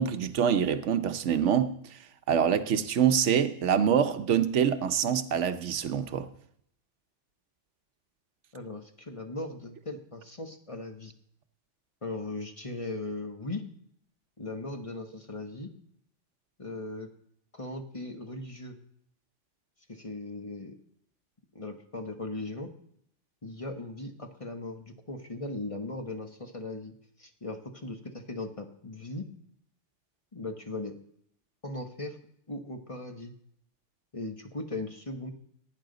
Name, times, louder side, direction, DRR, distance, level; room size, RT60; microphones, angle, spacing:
voice 1, 0.0-2.0 2.3-6.3, right 8 dB, 75° right, 1.1 m, -25 dB
voice 2, 8.5-11.1 12.0-13.6 14.4-15.7 16.6-17.1 17.5-18.8 19.9-20.7 21.5-22.7 23.4-29.3 30.3-30.9 31.6-32.2 32.5-33.3 34.1-35.3, left 2 dB, 30° left, 1.1 m, -38 dB
16.5 x 9.6 x 3.9 m
omnidirectional pair, 1.2 m